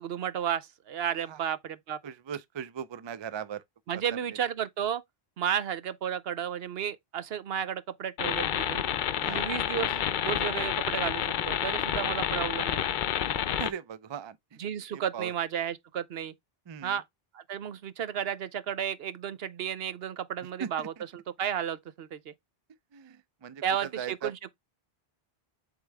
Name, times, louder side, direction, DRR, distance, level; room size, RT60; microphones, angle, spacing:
voice 1, 0.0-2.0 3.9-5.0 5.4-8.8 9.3-13.0 14.6-16.3 16.8-17.0 17.3-22.3 23.6-24.5, right 9 dB, 75° right, 0.9 m, -33 dB
voice 2, 2.0-3.6 3.9-4.0 9.1-9.5 13.6-14.6 14.9-15.3 16.7-17.0 20.6-21.0 22.9-24.3, right 8 dB, 40° right, 0.4 m, -39 dB
sound 1, 8.2-13.7, left 10 dB, 60° left, 0.6 m, -29 dB
8.0 x 3.7 x 3.3 m
omnidirectional pair, 1.0 m